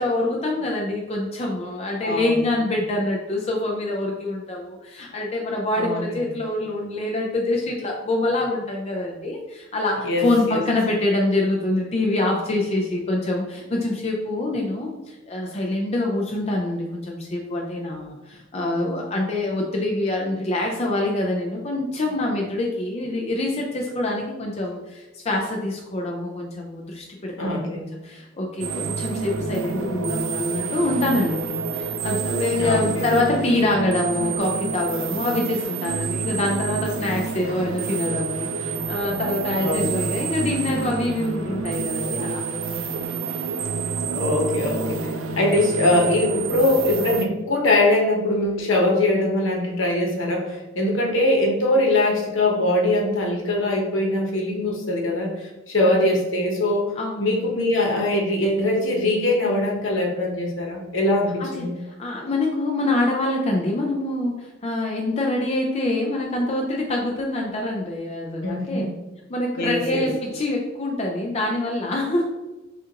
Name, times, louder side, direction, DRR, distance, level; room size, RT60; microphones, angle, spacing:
voice 1, 0.0-27.7 28.0-42.4 55.8-56.2 56.9-57.5 61.4-61.7 62.0-68.9 69.3-72.3, left 2 dB, 30° left, -1 dB, 0.5 m, -25 dB
voice 2, 2.0-2.4 5.8-6.3 10.0-10.6 18.6-19.0 27.4-27.9 32.3-33.1 39.5-40.1 44.1-56.9 57.2-61.7 68.4-68.9 69.6-70.1, left 1 dB, 70° left, 0 dB, 1.0 m, -22 dB
sound 1, 28.6-47.3, right 4 dB, 75° right, 0.4 m, -28 dB
6.3 x 2.5 x 2.9 m, 1.1 s
head